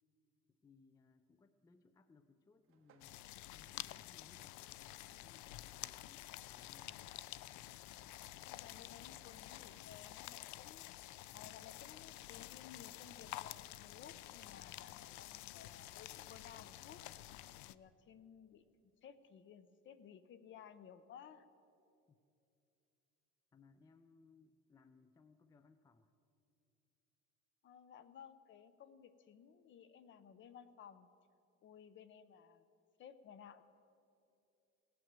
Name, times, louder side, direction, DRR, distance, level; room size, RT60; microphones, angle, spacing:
voice 1, 0.5-3.2 3.5-4.6 5.2-7.2 22.1-22.2 23.5-26.1, left 4 dB, 15° left, 11 dB, 0.3 m, -66 dB
sound 1, 2.6-13.9, right 6 dB, 45° right, 1.3 m, -77 dB
sound 2, 3.0-17.8, left 16 dB, 75° left, 0.5 m, -50 dB
voice 2, 8.5-17.0 17.7-18.6 19.0-21.5 27.6-31.1 31.6-32.6 33.0-33.6, left 8 dB, 40° left, 13 dB, 0.7 m, -57 dB
17.0 x 9.4 x 7.4 m, 2.7 s
cardioid pair, 155°, 29 cm